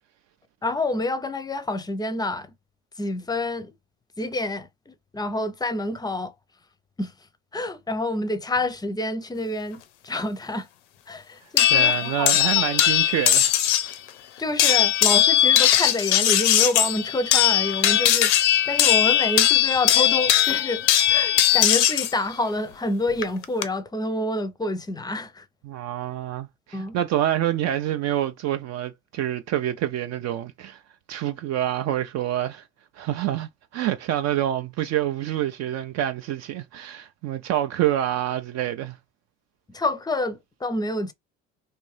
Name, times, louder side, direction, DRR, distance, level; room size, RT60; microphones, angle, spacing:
voice 1, 0.6-2.5 3.0-3.7 4.2-6.3 7.0-7.1 7.5-10.7 11.1-12.6 14.4-25.5 26.7-27.0 39.7-41.1, left 2 dB, 10° left, 0.5 m, -28 dB
sound 1, 11.6-13.9 14.6-22.1 23.2-23.6, left 11 dB, 90° left, 0.5 m, -19 dB
voice 2, 11.7-13.6 25.6-30.8 31.1-32.6 32.9-39.0, right 12 dB, 50° right, 0.4 m, -27 dB
2.7 x 2.5 x 3.2 m
hypercardioid pair, 70°, 34 cm